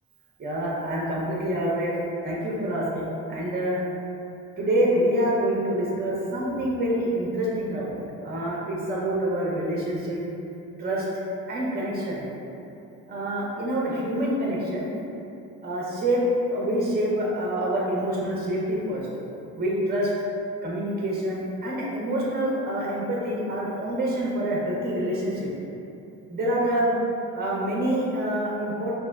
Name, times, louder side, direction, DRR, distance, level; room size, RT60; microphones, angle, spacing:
voice 1, 0.4-3.8 4.6-7.9 8.2-10.2 10.8-11.1 11.5-12.3 13.1-14.9 15.6-16.2 16.5-19.1 19.6-20.1 20.6-25.5 26.3-26.9 27.3-29.0, right 1 dB, 30° right, -4 dB, 0.7 m, -26 dB
2.9 x 2.1 x 3.4 m, 2.7 s
supercardioid pair, 85°, 34 cm